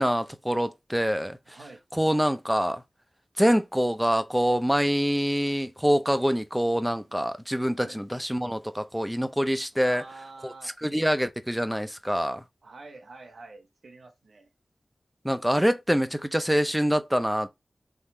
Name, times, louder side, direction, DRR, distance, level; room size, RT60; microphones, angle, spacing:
voice 1, 0.0-1.6 1.9-2.8 3.4-10.0 10.4-10.5 10.8-12.4 15.2-17.5, equal, 5° right, 0.6 m, -25 dB
voice 2, 1.5-1.8 7.8-8.0 9.8-10.8 12.6-14.5, right 3 dB, 85° right, 1.0 m, -47 dB
3.7 x 3.0 x 4.3 m
wide cardioid pair, 70°, 0 cm